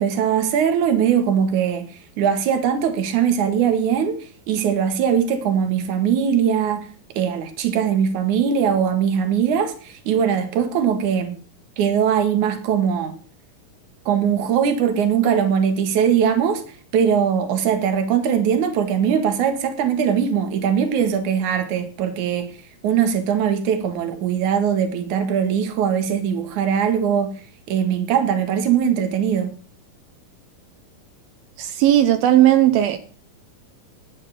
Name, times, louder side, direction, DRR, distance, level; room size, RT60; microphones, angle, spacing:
voice 1, 0.0-6.9 7.2-11.4 11.8-13.1 14.1-16.6 16.9-22.5 22.8-27.3 27.7-29.5, right 8 dB, 60° right, 3.0 m, -21 dB
voice 2, 31.6-33.0, right 12 dB, 80° right, 2.8 m, -16 dB
11.0 x 8.9 x 8.4 m
omnidirectional pair, 4.2 m